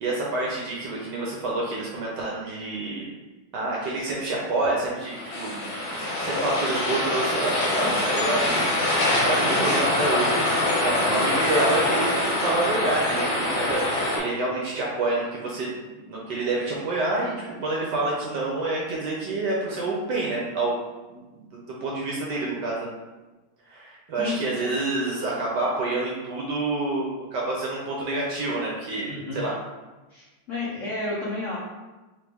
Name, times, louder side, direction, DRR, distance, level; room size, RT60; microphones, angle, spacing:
voice 1, 0.0-3.1 3.5-5.6 6.2-15.8 16.1-20.7 21.1-22.9 23.7-29.5, right 2 dB, 70° right, -3 dB, 1.1 m, -28 dB
sound 1, 5.0-14.2, left 1 dB, 50° left, 1.1 m, -24 dB
voice 2, 29.1-29.4 30.1-31.6, left 2 dB, 80° left, -6 dB, 0.6 m, -31 dB
3.7 x 3.2 x 3.4 m, 1.2 s
omnidirectional pair, 2.3 m